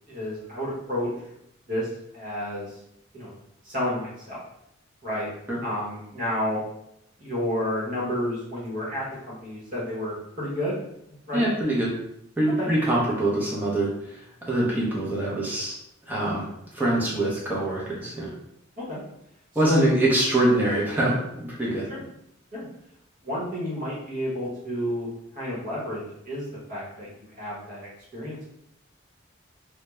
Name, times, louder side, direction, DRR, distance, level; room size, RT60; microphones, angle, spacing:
voice 1, 0.1-1.1 1.7-1.9 2.1-2.7 3.1-3.3 3.6-4.4 5.0-5.3 5.6-6.6 7.2-10.8 11.3-11.4 12.4-12.7 18.8-19.0 19.6-19.8 21.9-22.0 22.5-22.7 23.2-27.1 27.4-28.5, left 1 dB, 45° right, -7 dB, 0.9 m, -30 dB
voice 2, 11.3-11.9 12.4-15.8 16.1-16.5 16.7-18.3 19.5-21.9, right 1 dB, 10° right, -6 dB, 0.6 m, -24 dB
2.3 x 2.1 x 3.0 m, 0.80 s
head